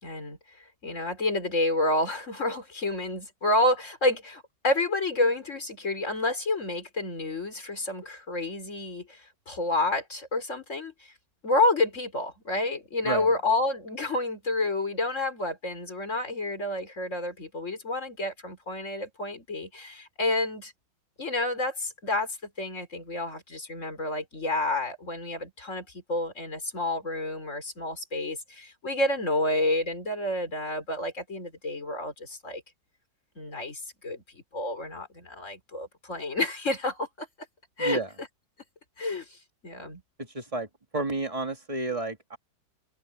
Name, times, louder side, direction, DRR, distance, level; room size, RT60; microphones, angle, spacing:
voice 1, 0.0-10.9 11.4-20.7 21.2-32.6 33.4-37.3 37.8-38.0 39.0-39.3 39.6-40.0, left 2 dB, 40° left, 4.5 m, -29 dB
voice 2, 37.8-38.1 40.2-40.7 40.9-42.4, right 2 dB, 20° right, 1.9 m, -31 dB
omnidirectional pair, 1.9 m